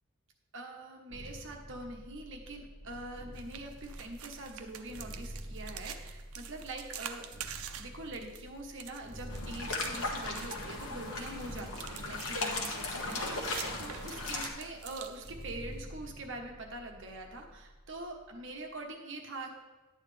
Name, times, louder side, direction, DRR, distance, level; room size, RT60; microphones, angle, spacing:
voice 1, 0.5-7.3 7.7-19.5, right 2 dB, 60° right, 2 dB, 1.2 m, -44 dB
sound 1, 1.1-18.8, equal, 50° left, 2.1 m, -49 dB
sound 2, 3.3-15.8, right 9 dB, 85° right, 0.6 m, -47 dB
sound 3, 9.3-14.5, left 2 dB, 70° left, 1.5 m, -37 dB
11.0 x 8.9 x 3.4 m, 1.1 s
head